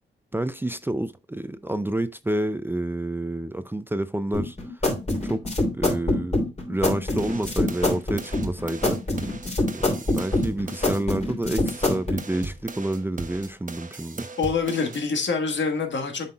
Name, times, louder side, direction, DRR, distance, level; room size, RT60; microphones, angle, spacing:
voice 1, 0.3-4.6 5.2-5.4 5.7-6.4 6.7-9.0 9.7-14.3, right 1 dB, 10° right, 0.4 m, -29 dB
sound 1, 4.3-12.2, left 2 dB, 35° left, 3.1 m, -25 dB
sound 2, 7.2-11.0 11.4-15.0, right 3 dB, 40° right, 1.0 m, -38 dB
voice 2, 14.4-16.3, left 5 dB, 70° left, 1.5 m, -25 dB
7.5 x 5.8 x 2.3 m
cardioid pair, 80°, 19 cm